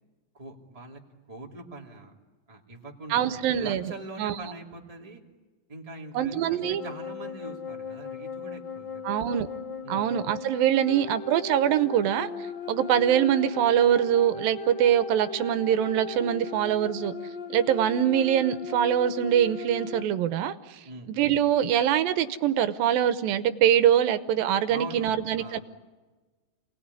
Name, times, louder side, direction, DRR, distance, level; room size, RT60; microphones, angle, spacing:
voice 1, 0.3-1.0 1.3-2.1 2.5-5.2 5.7-9.1 9.8-10.1 20.8-21.1 24.7-25.6, right 2 dB, 10° right, 0 dB, 2.4 m, -42 dB
voice 2, 3.1-3.8 4.2-4.3 6.1-6.8 9.0-9.5 9.9-12.3 12.7-17.1 17.5-20.8 21.1-25.6, right 10 dB, 85° right, 12 dB, 2.7 m, -23 dB
sound 1, 6.6-20.0, left 4 dB, 65° left, 1.1 m, -38 dB
28.5 x 19.5 x 9.7 m, 1.3 s
omnidirectional pair, 4.0 m